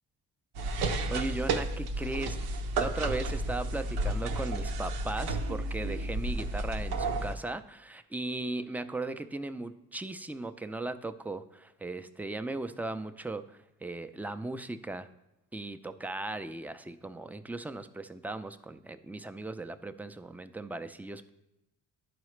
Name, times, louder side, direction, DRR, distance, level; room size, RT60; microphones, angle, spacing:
sound 1, 0.5-7.3, right 2 dB, 85° right, 0.7 m, -32 dB
voice 1, 1.1-2.4 2.8-15.1 15.5-21.3, right 2 dB, 5° right, 9 dB, 0.4 m, -37 dB
11.0 x 4.9 x 3.2 m, 0.89 s
supercardioid pair, 60°, 38 cm